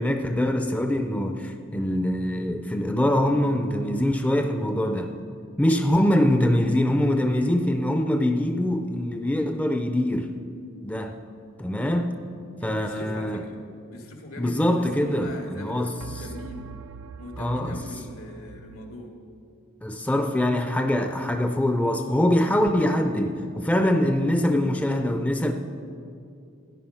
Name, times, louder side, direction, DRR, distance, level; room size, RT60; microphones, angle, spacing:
voice 1, 0.0-5.1 5.6-10.3 10.8-11.2 11.6-12.1 12.6-13.4 14.4-15.9 17.4-17.8 19.8-25.5, left 1 dB, 5° left, 6 dB, 0.5 m, -23 dB
sound 1, 8.6-9.5 16.0-19.0, right 6 dB, 75° right, 0.4 m, -43 dB
voice 2, 12.6-13.5 13.9-16.7 17.2-19.1, left 1 dB, 85° left, 2 dB, 1.9 m, -41 dB
13.5 x 10.0 x 5.6 m, 2.5 s
head